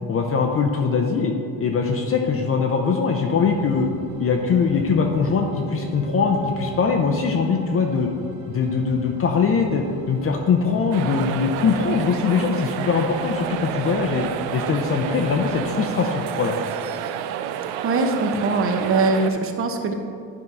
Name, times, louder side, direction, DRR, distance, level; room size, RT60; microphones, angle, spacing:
voice 1, 0.1-3.9 4.2-8.1 8.5-14.2 14.5-16.5, left 5 dB, 35° left, 2 dB, 0.6 m, -22 dB
sound 1, 3.3-15.7, right 4 dB, 75° right, 1.1 m, -39 dB
sound 2, 10.9-19.3, right 9 dB, 90° right, 0.5 m, -30 dB
voice 2, 17.6-19.9, right 3 dB, 35° right, 5 dB, 0.8 m, -22 dB
9.5 x 3.6 x 5.3 m, 2.4 s
cardioid pair, 115°, 38 cm